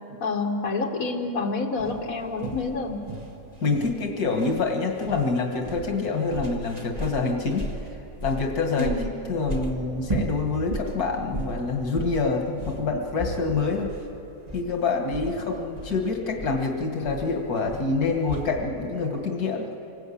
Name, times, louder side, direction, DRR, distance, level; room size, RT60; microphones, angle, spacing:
voice 1, 0.2-3.0 8.8-9.1, left 3 dB, 65° left, 1 dB, 2.2 m, -28 dB
sound 1, 1.8-18.6, right 1 dB, 25° right, 1.8 m, -35 dB
voice 2, 3.6-7.7 8.2-8.9 9.3-13.9 14.5-19.7, left 4 dB, 85° left, 2 dB, 2.1 m, -26 dB
25.5 x 19.5 x 8.5 m, 2.9 s
omnidirectional pair, 1.6 m